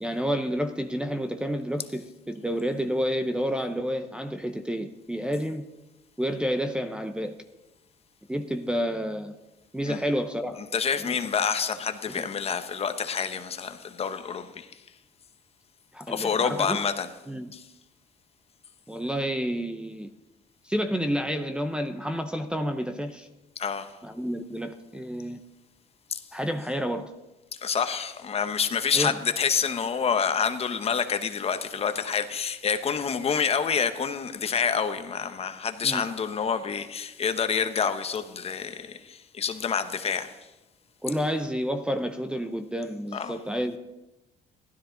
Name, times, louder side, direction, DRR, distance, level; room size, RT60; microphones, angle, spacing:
voice 1, 0.0-5.6 6.2-7.4 8.3-9.4 9.7-10.6 11.0-11.2 12.2-12.3 15.9-16.8 17.3-17.5 18.9-20.1 20.6-23.3 24.0-25.4 26.3-27.1 28.9-29.2 35.8-36.0 41.0-43.8, equal, 5° right, 0.7 m, -29 dB
voice 2, 10.7-14.7 16.1-17.1 17.5-17.6 23.6-23.9 26.1-26.2 27.6-40.4 43.1-43.4, left 6 dB, 35° left, 0.9 m, -28 dB
15.5 x 12.5 x 3.9 m
cardioid pair, 110°, 17 cm